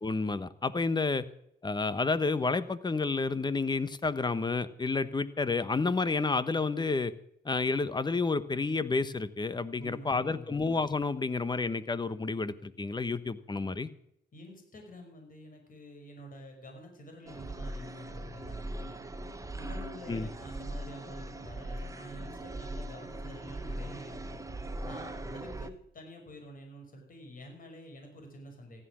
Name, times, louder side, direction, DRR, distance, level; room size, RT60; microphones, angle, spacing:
voice 1, 0.0-1.3 1.6-7.1 7.4-13.9 20.1-20.3, left 3 dB, 20° left, 15 dB, 1.1 m, -30 dB
voice 2, 9.8-10.6 14.3-19.0 19.5-24.4 24.8-28.8, equal, 45° left, 4 dB, 5.5 m, -48 dB
sound 1, 17.3-25.7, right 1 dB, 15° right, 1.4 m, -40 dB
15.5 x 11.5 x 6.2 m, 0.75 s
cardioid pair, 90°, 20 cm